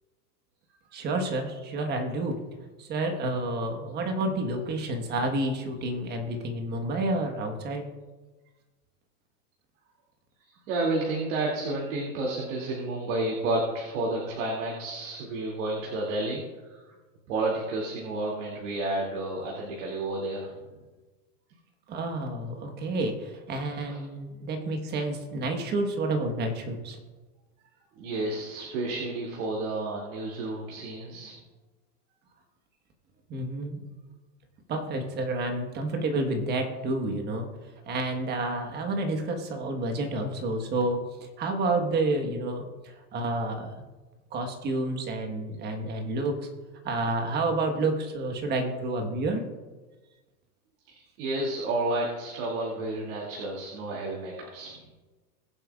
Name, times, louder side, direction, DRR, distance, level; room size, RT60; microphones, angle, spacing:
voice 1, 0.9-2.4 2.8-8.0 21.9-27.0 33.3-33.9 34.7-37.5 37.8-41.1 41.4-43.7 44.3-46.5 46.8-49.4, right 2 dB, 20° right, 4 dB, 1.3 m, -29 dB
voice 2, 10.4-16.9 17.3-20.5 23.8-24.0 27.9-31.3 50.9-54.8, right 2 dB, 50° right, -3 dB, 2.5 m, -31 dB
22.0 x 7.7 x 2.4 m, 1.3 s
supercardioid pair, 150°, 47 cm